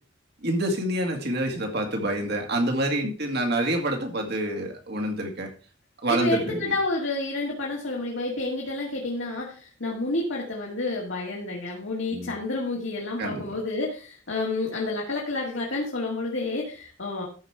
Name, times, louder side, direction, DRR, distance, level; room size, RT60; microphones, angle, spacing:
voice 1, 0.4-5.5 6.0-6.7 12.1-12.3 13.2-13.6, right 1 dB, 55° right, 3 dB, 2.2 m, -27 dB
voice 2, 6.1-17.2, left 2 dB, 70° left, -3 dB, 2.3 m, -29 dB
13.0 x 5.1 x 4.9 m, 0.39 s
head